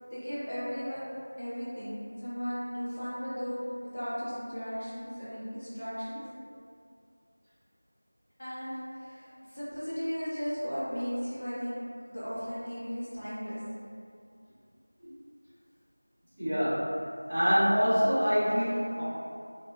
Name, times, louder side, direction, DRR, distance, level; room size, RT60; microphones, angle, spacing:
voice 1, 0.1-1.0 1.4-6.2 8.4-13.6, equal, 25° left, -12 dB, 0.8 m, -36 dB
voice 2, 16.4-16.9 17.3-19.0, equal, 20° right, -24 dB, 1.2 m, -25 dB
3.5 x 2.5 x 2.3 m, 2.3 s
figure-of-eight pair, 175°, 0 cm